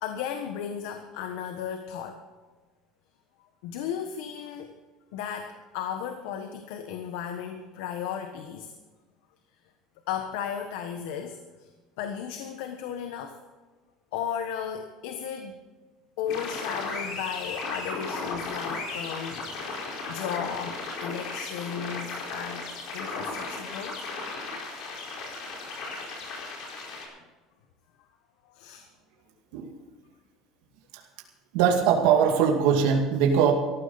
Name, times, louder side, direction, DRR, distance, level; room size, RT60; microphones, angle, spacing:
voice 1, 0.0-2.2 3.4-4.7 5.1-8.7 10.1-11.7 12.0-13.4 14.1-15.6 16.2-24.1 28.4-28.9, left 8 dB, 80° left, 6 dB, 1.3 m, -35 dB
sound 1, 16.3-27.0, left 3 dB, 50° left, 4.7 m, -35 dB
voice 2, 31.5-33.5, right 7 dB, 75° right, 1 dB, 2.3 m, -21 dB
18.5 x 14.5 x 4.2 m, 1.3 s
cardioid pair, 175°, 0 cm